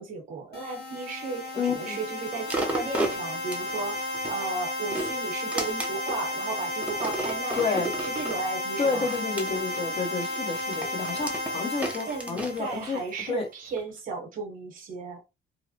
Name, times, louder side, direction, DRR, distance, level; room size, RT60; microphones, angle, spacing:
voice 1, 0.0-9.1 12.1-15.2, right 4 dB, 55° right, 0.8 m, -35 dB
sound 1, 0.5-13.2, left 1 dB, 70° left, 1.0 m, -33 dB
voice 2, 1.5-2.0 7.6-7.9 8.8-13.5, left 5 dB, 35° left, 1.0 m, -30 dB
sound 2, 2.5-4.4 4.8-6.2 6.8-8.4 9.1-13.3 13.8-13.9, right 1 dB, 10° right, 0.5 m, -34 dB
2.8 x 2.0 x 2.7 m
cardioid pair, 110°, 17 cm